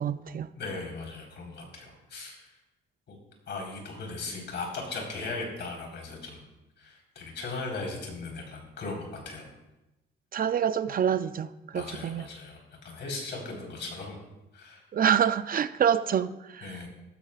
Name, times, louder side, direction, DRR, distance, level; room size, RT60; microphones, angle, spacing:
voice 1, 0.0-0.5 10.3-12.2 14.9-16.8, right 8 dB, 45° right, 0.5 m, -26 dB
voice 2, 0.5-2.5 3.1-3.2 3.5-6.4 6.8-9.5 11.7-12.6 12.8-14.2 14.5-14.8 16.6-16.9, left 3 dB, 65° left, 4.3 m, -38 dB
15.0 x 14.0 x 2.5 m
cardioid pair, 90°, 20 cm